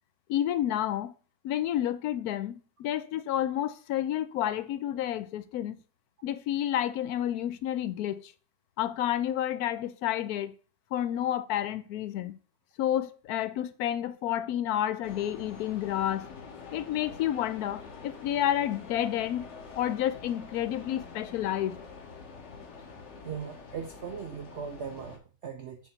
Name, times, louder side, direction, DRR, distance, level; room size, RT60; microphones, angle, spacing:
voice 1, 0.3-1.1 1.4-5.8 6.2-8.3 8.8-10.5 10.9-12.4 12.8-16.3 16.7-19.5 19.8-21.8, left 11 dB, 70° left, 1.0 m, -30 dB
sound 1, 15.0-25.2, left 5 dB, 50° left, 1.1 m, -46 dB
voice 2, 23.2-25.8, right 7 dB, 60° right, 0.7 m, -39 dB
7.1 x 2.6 x 5.6 m
omnidirectional pair, 1.8 m